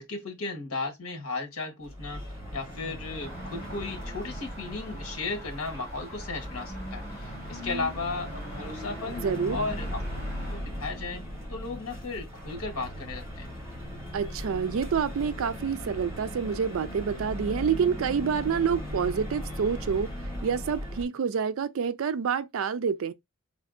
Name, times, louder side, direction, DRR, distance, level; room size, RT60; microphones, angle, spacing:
voice 1, 0.0-2.2 2.5-9.3 9.5-10.0 10.5-11.2 11.5-13.5, left 3 dB, 75° left, 1.2 m, -35 dB
sound 1, 1.8-21.0, equal, 15° right, 3.0 m, -38 dB
sound 2, 3.2-10.6, right 1 dB, 15° left, 2.8 m, -45 dB
voice 2, 9.1-9.6 14.1-20.1 20.4-23.1, right 6 dB, 70° right, 0.4 m, -28 dB
4.3 x 3.5 x 2.5 m
head